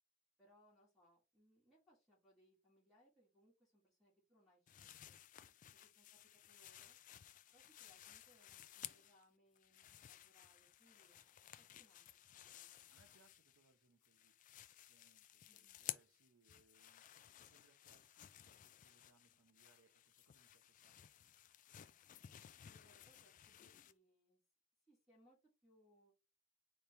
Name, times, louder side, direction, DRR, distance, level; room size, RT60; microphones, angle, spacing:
voice 1, 0.4-5.2 5.7-6.2 6.5-7.0 7.5-12.1 12.5-12.9 15.4-15.8 22.6-24.4 24.9-26.1, equal, ahead, 2.2 m, -73 dB
sound 1, 4.7-9.2 9.6-13.7 14.0-23.9, left 12 dB, 40° left, 0.3 m, -56 dB
voice 2, 12.9-14.3 14.9-17.1 17.4-21.0, right 3 dB, 90° right, 0.8 m, -75 dB
4.2 x 3.3 x 3.3 m
head